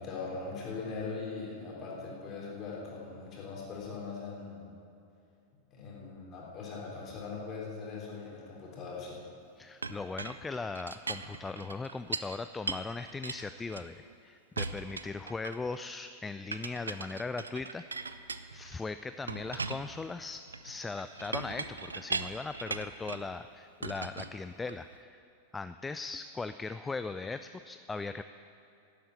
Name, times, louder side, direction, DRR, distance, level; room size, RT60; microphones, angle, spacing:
voice 1, 0.0-4.7 5.7-9.2, left 4 dB, 30° left, -3 dB, 3.6 m, -40 dB
voice 2, 9.6-18.2 18.5-25.2 25.5-28.2, left 3 dB, 10° left, 11 dB, 0.3 m, -39 dB
Chink clink, 9.8-12.4 12.7-14.2 14.6-15.8 16.5-18.8 19.3-23.3 23.8-25.0, right 4 dB, 75° right, 0.5 m, -39 dB
12.0 x 8.6 x 8.3 m, 2.6 s
figure-of-eight pair, 90°, 0 cm